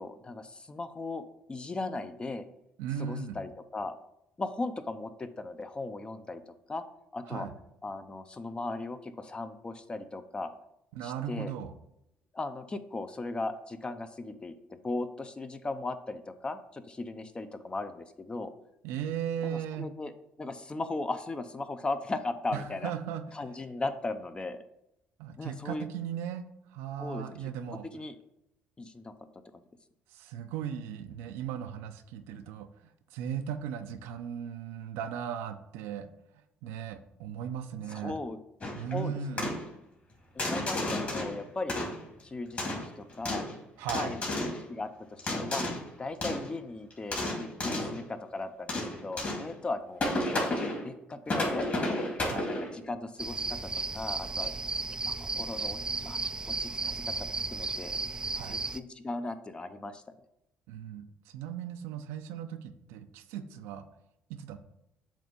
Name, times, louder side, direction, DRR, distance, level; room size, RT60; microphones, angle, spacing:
voice 1, 0.0-2.5 3.0-4.0 4.4-6.4 6.7-6.8 7.1-7.5 7.8-10.5 11.0-11.5 12.3-18.5 19.4-20.1 20.4-22.9 23.3-24.6 25.4-25.9 27.0-27.5 27.9-28.2 28.8-29.1 29.5-29.6 37.9-38.4 38.9-39.5 40.4-41.8 42.2-43.4 43.9-45.6 46.0-51.8 52.3-54.5 55.1-56.2 56.5-58.0 58.4-60.0, left 2 dB, 25° left, 10 dB, 0.6 m, -37 dB
voice 2, 2.8-3.4 7.3-7.5 10.9-11.7 18.8-19.9 22.5-23.2 25.2-27.8 30.1-32.7 33.1-36.1 36.6-38.2 38.7-39.6 43.8-44.2 47.6-47.8 52.3-52.5 58.3-58.6 60.7-61.1 61.3-63.9 64.3-64.6, right 8 dB, 85° right, 8 dB, 0.5 m, -37 dB
sound 1, 38.6-38.9 39.4-39.7 40.4-41.4 41.7-42.2 42.6-43.5 43.9-44.6 45.2-45.9 46.2-46.5 46.9-48.0 48.7-49.5 50.0-50.8 51.3-52.8, left 1 dB, 40° left, 2.4 m, -32 dB
sound 2, 53.2-58.8, right 3 dB, 20° right, 0.3 m, -34 dB
7.3 x 2.6 x 5.3 m, 0.82 s
supercardioid pair, 80°, 4 cm